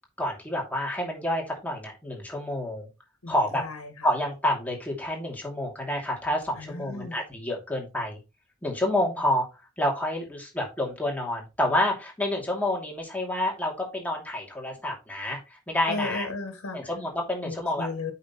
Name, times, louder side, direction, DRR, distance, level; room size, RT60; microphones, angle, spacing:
voice 1, 0.2-2.9 3.3-3.6 4.0-8.2 8.6-9.5 9.8-16.3 16.7-17.9, left 1 dB, 10° left, 2.6 m, -28 dB
voice 2, 3.2-4.1 6.6-7.2 15.9-16.9 17.4-18.1, left 3 dB, 85° left, 1.6 m, -35 dB
8.4 x 5.9 x 3.0 m
head